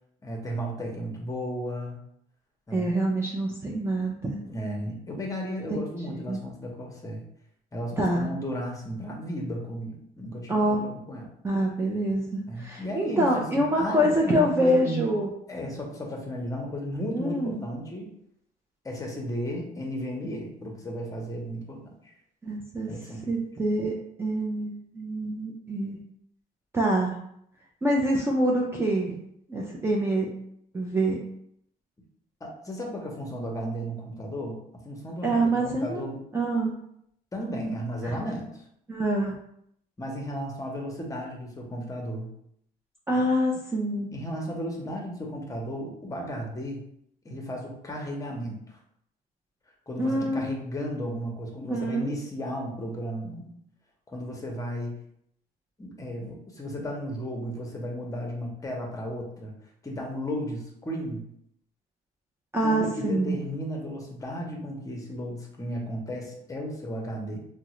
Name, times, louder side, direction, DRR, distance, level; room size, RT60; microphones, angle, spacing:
voice 1, 0.2-2.0 2.7-2.9 4.4-7.2 7.7-11.3 12.5-15.1 15.5-18.1 18.8-21.9 22.9-23.2 32.4-34.6 34.8-36.2 37.3-38.6 40.0-42.3 44.1-46.8 47.2-48.8 49.9-53.5 54.1-55.0 55.8-59.5 59.8-61.2 62.6-67.4, equal, 20° left, 0 dB, 0.8 m, -34 dB
voice 2, 2.7-4.4 5.7-5.8 6.3-6.4 8.0-8.3 10.5-10.8 11.4-15.3 17.1-17.6 22.4-22.9 23.3-23.9 24.2-26.0 26.7-27.2 27.8-29.2 29.5-30.4 30.7-31.2 35.2-36.1 36.3-36.7 38.0-38.1 38.9-39.3 43.1-44.1 50.0-50.6 51.6-52.1 62.5-63.4, right 1 dB, 15° right, -2 dB, 0.4 m, -26 dB
3.5 x 2.1 x 3.0 m, 0.72 s
cardioid pair, 110°, 17 cm